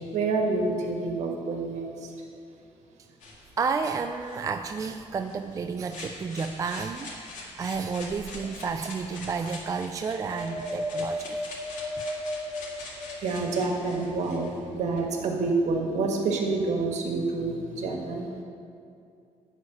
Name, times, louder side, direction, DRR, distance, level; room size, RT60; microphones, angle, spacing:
voice 1, 0.0-2.1 13.2-18.3, right 3 dB, 65° right, 1 dB, 1.7 m, -28 dB
sound 1, 3.2-15.0, left 2 dB, 85° left, 2.1 m, -44 dB
voice 2, 3.6-11.4, right 5 dB, 25° right, 7 dB, 0.3 m, -31 dB
Wind, 10.1-13.7 14.2-15.3 16.0-16.1, left 1 dB, 35° left, 2.9 m, -35 dB
11.5 x 4.8 x 8.4 m, 2.5 s
cardioid pair, 140°, 13 cm